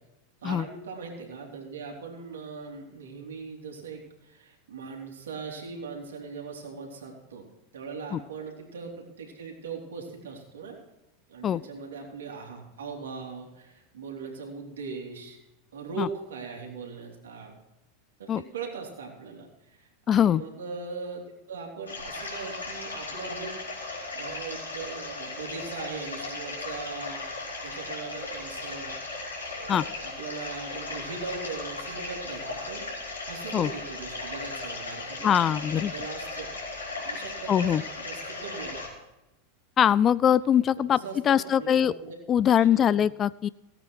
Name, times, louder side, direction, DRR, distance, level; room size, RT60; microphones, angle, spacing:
voice 1, 0.4-7.5 7.7-10.8 11.3-15.4 15.7-17.5 18.2-23.6 24.1-27.3 27.6-28.9 29.5-32.9 33.2-36.5 37.0-38.8 40.8-42.1 42.4-43.0, right 4 dB, 70° right, 0 dB, 3.3 m, -40 dB
voice 2, 20.1-20.4 29.7-29.8 33.5-33.7 35.2-35.9 37.5-37.8 39.8-41.0 41.2-41.9 42.3-43.5, left 9 dB, 30° left, 20 dB, 0.3 m, -22 dB
sound 1, 21.9-38.9, left 3 dB, 85° left, 4.9 m, -37 dB
17.0 x 8.9 x 4.6 m, 0.97 s
figure-of-eight pair, 85°, 0 cm